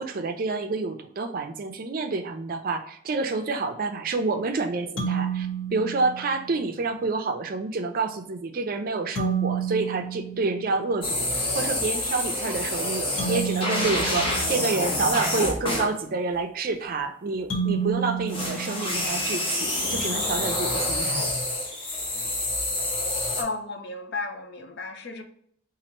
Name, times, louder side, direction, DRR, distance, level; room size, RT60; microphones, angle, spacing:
voice 1, 0.0-21.3, right 3 dB, 45° right, 0.4 m, -28 dB
sound 1, 5.0-6.6 9.1-11.2 13.2-15.3 17.5-19.5, right 6 dB, 75° left, 1.5 m, -31 dB
sound 2, 11.0-15.9 18.3-23.4, left 1 dB, 25° left, 0.8 m, -27 dB
voice 2, 23.4-25.2, left 3 dB, 55° left, 0.6 m, -33 dB
4.2 x 2.5 x 2.9 m
head